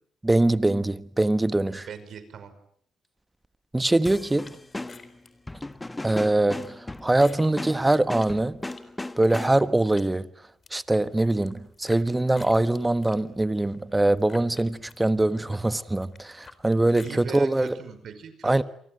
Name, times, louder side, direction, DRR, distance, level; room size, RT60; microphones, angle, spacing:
voice 1, 0.2-1.9 3.7-4.6 6.0-8.6 9.2-10.3 10.7-17.8 18.4-18.6, right 2 dB, 15° right, 1.4 m, -23 dB
voice 2, 1.8-2.5 17.0-18.6, right 7 dB, 60° right, 5.4 m, -40 dB
sound 1, 4.0-9.8, left 2 dB, 15° left, 1.5 m, -37 dB
sound 2, 4.4-10.1 10.5-12.0 12.4-17.7, left 4 dB, 35° left, 4.0 m, -50 dB
29.5 x 24.5 x 7.9 m
cardioid pair, 90°, 0 cm